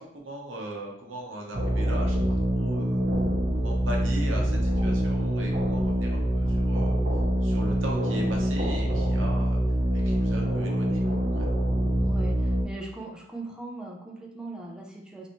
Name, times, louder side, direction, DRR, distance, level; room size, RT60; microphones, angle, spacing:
voice 1, 0.1-2.2 2.5-3.0 3.5-7.0 7.4-9.6 9.9-11.2 11.6-11.7, right 1 dB, 90° right, -1 dB, 0.8 m, -38 dB
sound 1, 1.5-12.6, equal, 50° right, 0.6 m, -25 dB
voice 2, 12.0-15.3, right 2 dB, 5° right, -1 dB, 0.4 m, -40 dB
3.2 x 2.6 x 2.9 m, 0.75 s
head